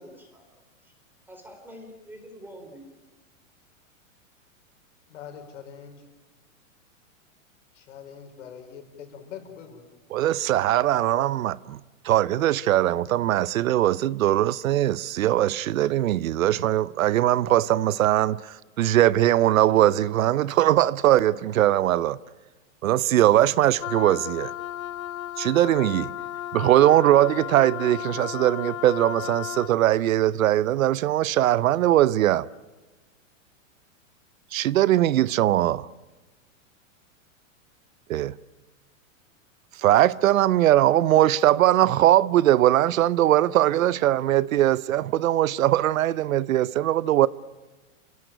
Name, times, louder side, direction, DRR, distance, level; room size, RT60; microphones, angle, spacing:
voice 1, 0.0-0.9 1.3-2.9, equal, 5° right, 3.9 m, -46 dB
voice 2, 5.1-6.0 7.7-9.8, left 8 dB, 60° left, 5.4 m, -43 dB
voice 3, 10.1-11.8 12.0-22.2 22.8-24.5 25.4-26.1 26.5-32.5 34.5-35.9 38.1-38.3 39.8-47.3, right 13 dB, 75° right, 0.8 m, -21 dB
Wind instrument woodwind instrument, 23.8-29.8, left 13 dB, 85° left, 0.8 m, -34 dB
29.0 x 17.0 x 9.1 m
supercardioid pair, 155°, 41 cm